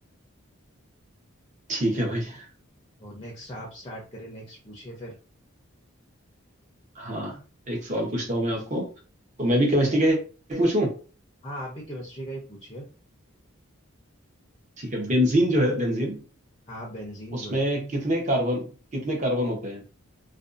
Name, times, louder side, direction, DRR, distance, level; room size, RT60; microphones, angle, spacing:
voice 1, 1.7-2.5 7.0-7.4 7.7-8.9 9.4-10.2 10.5-10.9 14.8-16.2 17.3-19.8, equal, 35° right, 0 dB, 0.7 m, -25 dB
voice 2, 3.0-5.2 11.4-12.8 16.7-17.7, equal, 20° left, -3 dB, 0.5 m, -39 dB
2.5 x 2.2 x 2.5 m, 0.36 s
head